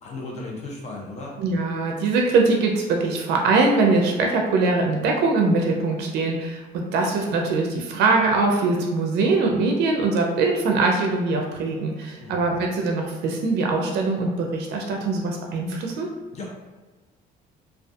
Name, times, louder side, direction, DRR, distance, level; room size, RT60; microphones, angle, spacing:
voice 1, 0.0-1.4 12.2-12.4 16.3-16.5, left 2 dB, 40° left, -2 dB, 0.7 m, -35 dB
voice 2, 1.4-16.1, right 3 dB, 75° right, 1 dB, 0.4 m, -22 dB
2.5 x 2.3 x 2.3 m, 1.3 s
cardioid pair, 110°, 17 cm